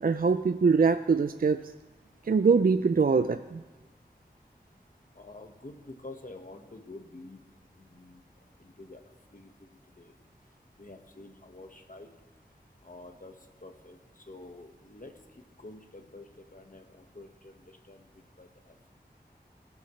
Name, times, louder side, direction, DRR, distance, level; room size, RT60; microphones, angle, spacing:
voice 1, 0.0-1.6 2.3-3.6, right 5 dB, 55° right, 10 dB, 0.4 m, -23 dB
voice 2, 5.1-7.4 7.9-8.2 8.6-9.0 9.3-9.7 10.0-10.1 10.8-12.1 12.8-13.3 13.6-14.0 14.3-15.1 15.6-17.6 17.9-18.0 18.4-18.9, left 2 dB, 50° left, 5 dB, 1.4 m, -48 dB
25.5 x 12.0 x 3.2 m, 1.2 s
wide cardioid pair, 50°, 18 cm